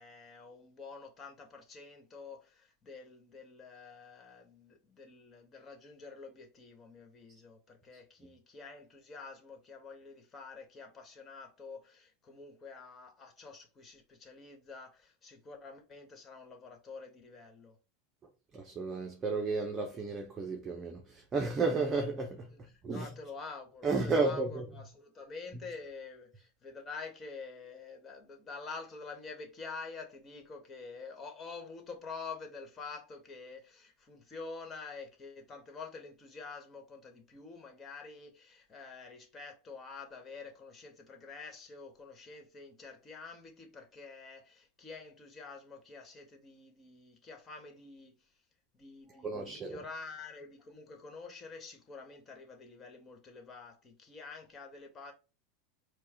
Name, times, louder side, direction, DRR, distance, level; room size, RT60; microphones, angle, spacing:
voice 1, 0.0-17.8 22.5-48.3 48.7-55.1, left 4 dB, 30° left, 1.5 m, -48 dB
voice 2, 18.5-22.5 22.8-23.1 23.8-24.7 25.5-25.6 49.2-49.8, right 3 dB, 25° right, 0.8 m, -32 dB
4.7 x 2.3 x 4.4 m
hypercardioid pair, 100°, 0 cm